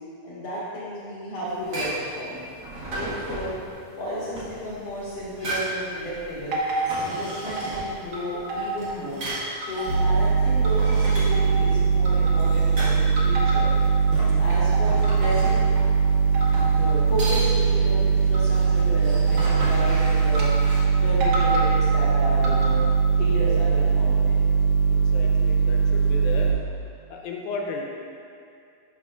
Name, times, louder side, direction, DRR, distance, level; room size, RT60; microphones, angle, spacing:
voice 1, 0.2-2.4 2.9-3.6 4.0-6.6 7.0-9.3 9.6-13.7 14.1-15.6 16.4-20.5 21.0-22.8 23.2-24.4, equal, 55° left, -9 dB, 2.2 m, -33 dB
sound 1, 1.5-20.8, right 1 dB, 45° right, 1.3 m, -36 dB
sound 2, 6.5-7.8 8.1-9.0 9.3-11.0 11.3-11.7 12.0-12.7 13.2-13.9 14.3-15.9 16.3-16.9 17.2-17.5 18.3-18.7 19.3-20.5 20.7-20.8 21.2-21.7 22.2-22.9, right 1 dB, 85° right, 1.2 m, -31 dB
sound 3, 9.9-26.5, right 6 dB, 65° right, 2.2 m, -21 dB
voice 2, 25.1-26.5 27.1-27.8, left 4 dB, 85° left, 0 dB, 2.5 m, -34 dB
11.5 x 5.6 x 2.4 m, 2.4 s
omnidirectional pair, 4.1 m